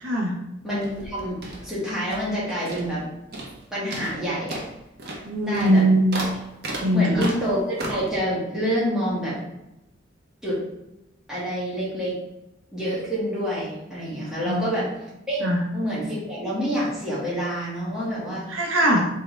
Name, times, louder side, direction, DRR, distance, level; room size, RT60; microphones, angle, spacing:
voice 1, 0.0-0.4 5.2-6.1 6.8-7.3 14.4-14.6 15.4-15.6 18.5-19.1, right 1 dB, 80° right, 0 dB, 0.8 m, -21 dB
voice 2, 0.6-1.4 1.6-3.1 3.7-4.6 5.4-5.8 6.9-9.4 10.4-10.6 11.3-12.1 12.7-14.9 15.3-15.5 15.7-18.4, equal, 5° right, -9 dB, 1.6 m, -27 dB
sound 1, 0.8-2.4 2.7-3.0 3.3-3.6 3.9-8.2, right 1 dB, 50° right, 0.9 m, -35 dB
4.3 x 3.6 x 3.2 m, 0.92 s
head